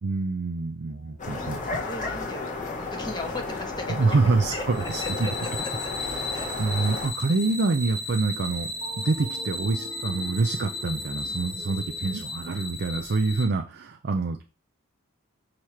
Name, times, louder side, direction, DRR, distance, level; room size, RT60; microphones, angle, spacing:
voice 1, 0.0-1.8 3.9-5.0 6.6-8.7 9.0-14.4, right 3 dB, 50° right, 5 dB, 0.5 m, -26 dB
sound 1, 0.9-12.2, equal, 70° right, 1.7 m, -47 dB
sound 2, 1.2-7.1, left 3 dB, 35° left, 1.6 m, -33 dB
voice 2, 1.2-5.9 6.3-6.5, left 2 dB, 20° left, 3 dB, 1.3 m, -38 dB
sound 3, 4.7-13.4, left 2 dB, 60° left, 2.9 m, -35 dB
6.5 x 3.1 x 5.6 m, 0.33 s
head